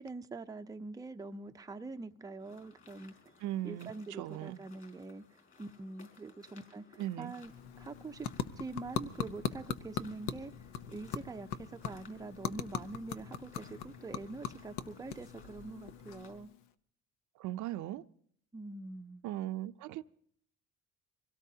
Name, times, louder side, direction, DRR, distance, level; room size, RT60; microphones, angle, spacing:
voice 1, 0.0-3.1 3.6-7.5 7.8-8.3 8.6-10.5 10.9-16.5 18.5-19.2, right 3 dB, 10° right, 0.5 m, -44 dB
sound 1, 2.4-16.3, left 5 dB, 40° left, 5.2 m, -61 dB
voice 2, 3.4-4.6 7.0-7.3 17.4-18.0 19.2-20.0, right 14 dB, 70° right, 0.6 m, -38 dB
sound 2, 7.3-16.7, left 8 dB, 85° left, 0.9 m, -41 dB
24.5 x 17.0 x 2.8 m
cardioid pair, 100°, 31 cm